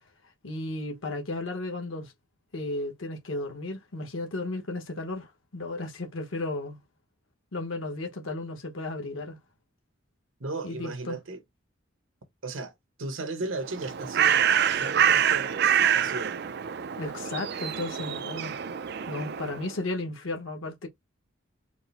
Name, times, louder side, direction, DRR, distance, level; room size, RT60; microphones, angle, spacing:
voice 1, 0.4-2.1 2.5-6.8 7.5-9.4 10.6-11.2 17.0-18.5 19.1-20.9, left 2 dB, 90° left, 1.0 m, -34 dB
voice 2, 10.4-11.4 12.4-12.7 13.0-16.5, right 3 dB, 90° right, 1.1 m, -36 dB
Bird, 13.6-19.7, right 9 dB, 55° right, 0.4 m, -26 dB
4.6 x 2.0 x 4.0 m
head